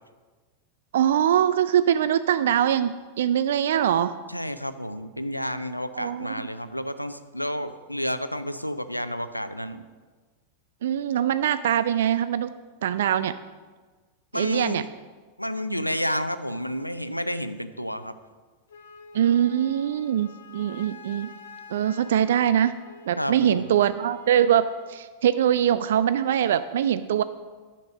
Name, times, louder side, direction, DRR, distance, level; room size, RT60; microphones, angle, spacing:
voice 1, 0.9-4.1 5.9-6.3 10.8-12.5 12.8-13.3 14.3-14.8 19.1-21.3 21.7-22.8 23.1-27.2, right 10 dB, 60° right, 13 dB, 0.3 m, -23 dB
voice 2, 4.3-9.8 14.3-14.9 15.4-18.2 23.2-23.7, equal, 90° left, 12 dB, 0.5 m, -30 dB
Wind instrument woodwind instrument, 18.7-25.0, left 4 dB, 65° left, 1.1 m, -47 dB
9.4 x 6.7 x 6.4 m, 1.4 s
figure-of-eight pair, 90°, 0 cm